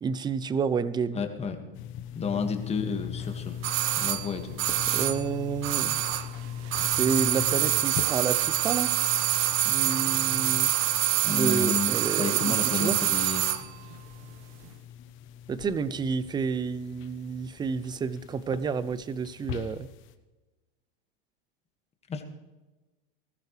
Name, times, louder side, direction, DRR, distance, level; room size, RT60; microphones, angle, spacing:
voice 1, 0.0-1.2 4.9-6.0 6.9-8.9 9.7-10.7 11.3-13.0 15.5-19.9, right 5 dB, 15° right, 17 dB, 0.5 m, -30 dB
voice 2, 1.1-1.6 2.1-3.6 4.0-5.1 11.3-13.4 22.1-22.2, left 5 dB, 20° left, 5 dB, 1.9 m, -31 dB
sound 1, 1.7-20.1, left 9 dB, 45° left, 1.2 m, -41 dB
sound 2, 3.6-6.4 6.6-13.7 13.9-14.0, right 14 dB, 45° right, 1.0 m, -26 dB
19.0 x 14.0 x 3.3 m, 1.1 s
supercardioid pair, 125°, 29 cm